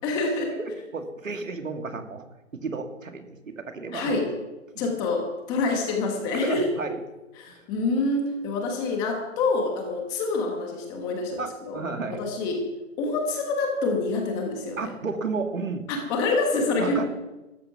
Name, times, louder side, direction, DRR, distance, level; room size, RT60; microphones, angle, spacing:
voice 1, 0.0-0.5 3.9-4.3 4.8-6.9 7.4-11.8 12.1-12.6 13.0-14.9 15.9-17.0, left 3 dB, 10° left, 2 dB, 1.3 m, -26 dB
voice 2, 0.6-2.2 2.5-4.3 4.7-4.9 6.3-7.0 11.4-12.3 14.8-15.9 16.8-17.0, right 4 dB, 75° right, 6 dB, 2.3 m, -32 dB
14.0 x 13.5 x 5.9 m, 1.1 s
hypercardioid pair, 165°, 40 cm